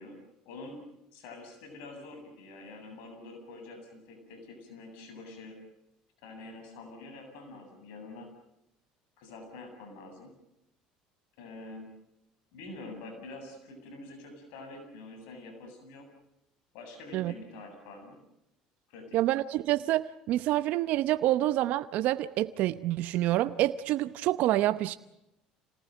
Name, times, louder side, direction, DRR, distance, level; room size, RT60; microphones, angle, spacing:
voice 1, 0.0-5.6 6.2-8.3 9.2-10.3 11.4-11.9 12.5-16.1 16.7-18.2 18.9-19.2, left 2 dB, 75° left, 5 dB, 7.9 m, -46 dB
voice 2, 19.1-25.0, right 14 dB, 65° right, 12 dB, 0.9 m, -27 dB
27.0 x 19.0 x 9.1 m, 0.86 s
supercardioid pair, 85°, 3 cm